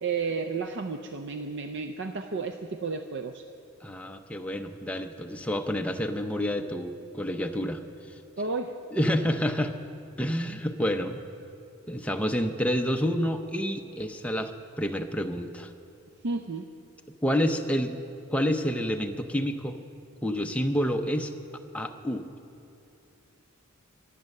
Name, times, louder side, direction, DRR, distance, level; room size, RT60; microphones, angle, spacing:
voice 1, 0.0-3.4 8.4-8.8 16.2-16.7, right 4 dB, 55° right, 7 dB, 0.5 m, -32 dB
voice 2, 3.8-7.8 8.9-9.8 10.2-11.2 11.9-14.5 14.8-15.7 17.2-17.9 18.3-19.8 20.2-21.3 21.7-22.3, equal, 5° left, 4 dB, 0.6 m, -28 dB
23.0 x 8.3 x 6.6 m, 2.7 s
head